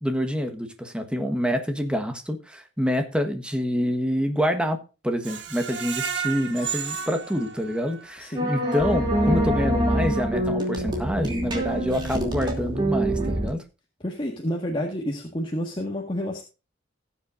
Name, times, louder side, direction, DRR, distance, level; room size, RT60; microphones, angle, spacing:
voice 1, 0.0-4.8 5.0-13.6, equal, 5° right, 7 dB, 1.3 m, -26 dB
Screech, 5.2-8.2 8.6-8.7 9.1-9.2, right 7 dB, 60° right, 1.6 m, -33 dB
voice 2, 8.2-8.5 14.0-16.4, equal, 25° left, 0 dB, 1.7 m, -29 dB
sound 1, 8.4-13.5, right 1 dB, 25° right, 2.9 m, -25 dB
18.5 x 7.3 x 2.6 m, 0.31 s
head